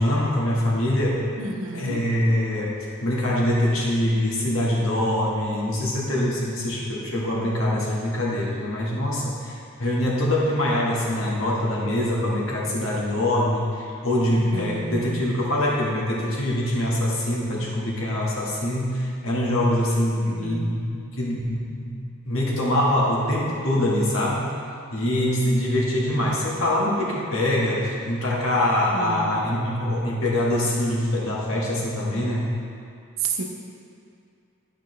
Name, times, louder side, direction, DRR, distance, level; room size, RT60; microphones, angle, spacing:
voice 1, 0.0-1.2 1.7-2.7 3.0-21.9 22.2-24.6 24.9-32.5, left 1 dB, 75° left, -5 dB, 1.5 m, -24 dB
voice 2, 1.4-2.1 14.5-15.2 20.3-20.8 28.9-29.5 33.2-33.4, right 4 dB, 75° right, 1 dB, 0.8 m, -31 dB
11.0 x 4.9 x 3.2 m, 2.5 s
head